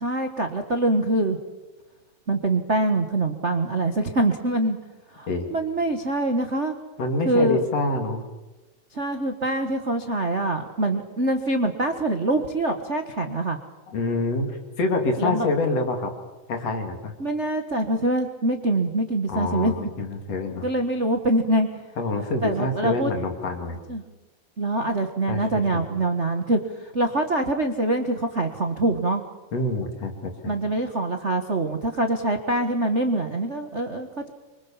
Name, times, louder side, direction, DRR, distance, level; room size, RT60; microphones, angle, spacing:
voice 1, 0.0-1.4 2.3-4.8 5.1-6.8 7.2-7.6 8.9-13.6 15.2-15.5 17.2-19.7 20.6-21.7 22.4-23.1 23.9-24.0 24.6-29.2 30.5-34.3, right 2 dB, 70° right, 4 dB, 0.6 m, -24 dB
voice 2, 7.0-8.2 13.9-16.1 16.5-17.1 19.3-20.7 22.0-23.8 25.3-25.9 29.5-30.6, left 2 dB, 50° left, 4 dB, 3.7 m, -26 dB
26.0 x 24.5 x 7.3 m, 1.1 s
omnidirectional pair, 3.9 m